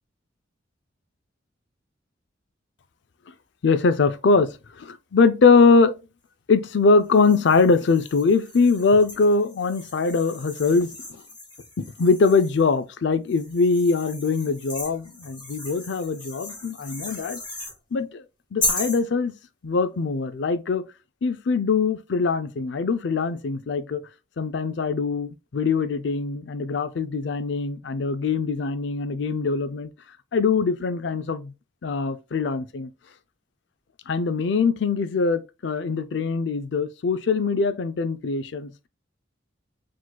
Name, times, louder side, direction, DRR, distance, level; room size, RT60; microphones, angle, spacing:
voice 1, 3.6-6.0 6.5-11.2 11.8-17.4 17.9-18.2 18.5-19.3 19.6-20.8 21.2-24.0 24.4-29.9 30.3-31.5 31.8-32.9 34.1-38.7, left 4 dB, 65° left, 0.4 m, -22 dB
sound 1, 7.1-12.7 13.3-17.8 18.6-19.0, left 2 dB, 25° left, 1.8 m, -35 dB
5.0 x 3.8 x 2.2 m
head